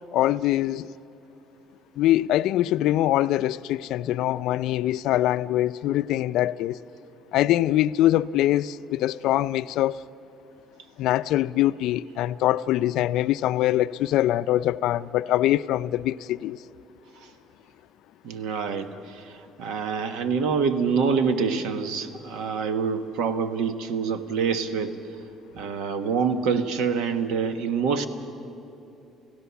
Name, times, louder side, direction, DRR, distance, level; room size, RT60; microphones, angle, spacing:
voice 1, 0.1-0.9 2.0-6.8 7.3-10.0 11.0-16.6, left 14 dB, 65° left, 0.4 m, -23 dB
voice 2, 18.2-25.0 25.5-28.1, right 5 dB, 75° right, 1.4 m, -26 dB
30.0 x 16.0 x 7.1 m
cardioid pair, 160°, 0 cm